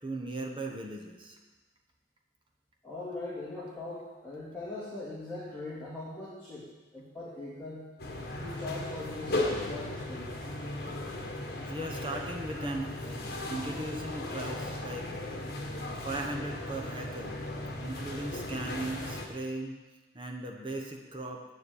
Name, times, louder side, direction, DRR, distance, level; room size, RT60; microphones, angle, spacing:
voice 1, 0.0-1.4 11.6-15.1 15.9-17.4 17.8-19.7 20.1-21.4, right 2 dB, 25° right, 1 dB, 1.1 m, -38 dB
voice 2, 2.8-6.7 6.9-7.8 8.4-10.3 12.5-12.6 17.3-17.4, left 2 dB, 10° left, -9 dB, 2.3 m, -41 dB
sound 1, 8.0-19.3, left 1 dB, 55° left, 1.5 m, -36 dB
8.6 x 7.3 x 8.5 m, 1.2 s
head